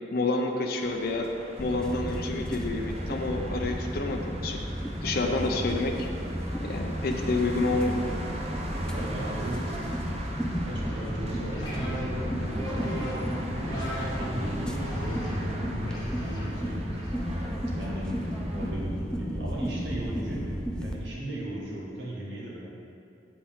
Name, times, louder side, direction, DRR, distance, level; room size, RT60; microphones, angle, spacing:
voice 1, 0.1-1.3 1.6-4.6 5.0-5.9 6.6-8.0, left 2 dB, 55° left, 2 dB, 0.6 m, -29 dB
sound 1, 0.8-18.7, right 1 dB, 35° right, 0.8 m, -41 dB
sound 2, 1.6-20.9, equal, 5° left, 0.5 m, -33 dB
voice 2, 5.5-5.8 8.9-9.7 10.6-13.2 13.5-16.9 17.8-22.7, right 1 dB, 75° right, -4 dB, 1.7 m, -38 dB
sound 3, 10.9-17.2, equal, 25° left, 1.8 m, -35 dB
8.1 x 7.4 x 3.6 m, 2.6 s
head